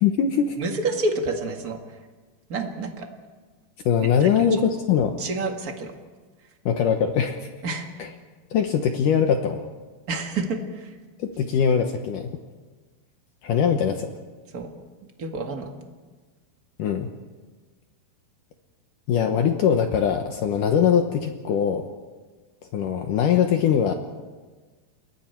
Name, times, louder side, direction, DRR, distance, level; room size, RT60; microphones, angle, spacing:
voice 1, 0.0-0.6 3.9-5.1 6.7-7.5 8.0-8.1 8.5-9.6 11.2-12.3 13.4-14.1 16.8-17.1 19.1-21.9 22.7-23.9, left 7 dB, 70° left, 5 dB, 2.1 m, -22 dB
voice 2, 0.6-1.8 2.5-3.1 4.2-4.4 5.2-5.9 7.6-7.9 10.1-10.9 14.5-14.7 15.2-15.7, right 3 dB, 40° right, 3 dB, 1.3 m, -28 dB
29.0 x 22.5 x 4.5 m, 1.4 s
omnidirectional pair, 4.9 m